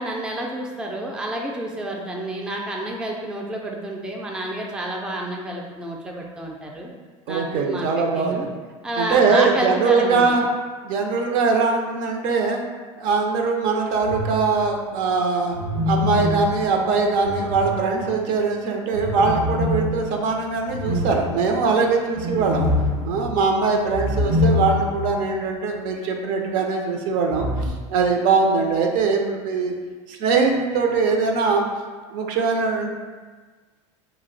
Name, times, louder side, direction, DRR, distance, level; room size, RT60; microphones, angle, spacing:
voice 1, 0.0-6.9 7.3-8.5 8.8-10.3, right 1 dB, 5° right, -1 dB, 0.3 m, -29 dB
voice 2, 7.3-8.5 9.0-10.4 10.8-12.6 13.0-15.6 15.9-22.7 23.0-29.7 30.1-31.6 32.1-32.9, right 4 dB, 60° right, 2 dB, 0.5 m, -21 dB
sound 1, 14.0-14.7 15.5-18.3 18.9-25.1 25.4-25.5 27.3-27.7, left 2 dB, 85° right, 0.9 m, -25 dB
2.5 x 2.1 x 3.8 m, 1.4 s
hypercardioid pair, 95°, 16 cm